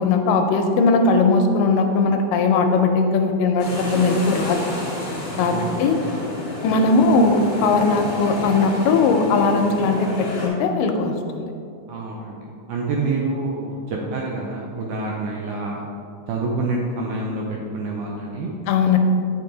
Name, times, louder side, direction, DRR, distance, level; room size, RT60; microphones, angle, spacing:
voice 1, 0.0-4.6 5.4-5.5 5.8-6.0 6.6-11.5 18.7-19.0, left 4 dB, 80° left, 5 dB, 2.1 m, -19 dB
sound 1, 3.6-10.5, left 2 dB, 30° left, 1.4 m, -30 dB
voice 2, 5.4-5.9 11.9-12.4 12.7-15.8 16.3-18.5, right 3 dB, 80° right, -1 dB, 1.8 m, -27 dB
8.6 x 5.3 x 3.8 m, 2.4 s
omnidirectional pair, 4.1 m